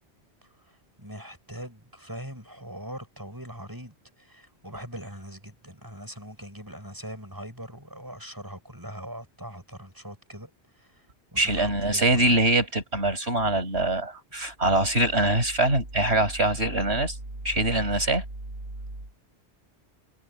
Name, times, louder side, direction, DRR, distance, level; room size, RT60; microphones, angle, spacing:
voice 1, 1.0-10.5 11.3-12.3, equal, 20° right, 7.2 m, -41 dB
voice 2, 11.4-17.2 17.4-18.2, right 2 dB, 70° right, 6.6 m, -23 dB
omnidirectional pair, 1.1 m